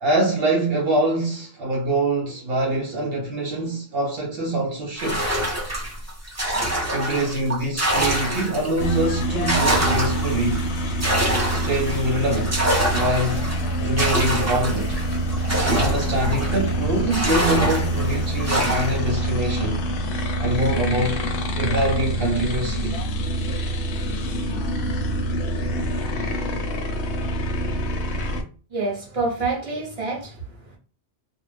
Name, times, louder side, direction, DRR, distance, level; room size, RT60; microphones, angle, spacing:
voice 1, 0.0-5.3 6.9-10.7 11.5-13.5 13.8-15.0 15.6-19.8 20.4-21.2 21.6-23.0, right 1 dB, 65° right, 0.8 m, -24 dB
sound 1, 5.0-8.8 9.2-16.7 17.1-19.1, right 1 dB, 15° right, 0.6 m, -25 dB
sound 2, 8.8-28.4, right 1 dB, 80° left, 0.9 m, -26 dB
voice 2, 28.7-30.8, right 3 dB, 35° right, 1.0 m, -27 dB
2.5 x 2.0 x 3.1 m
omnidirectional pair, 1.1 m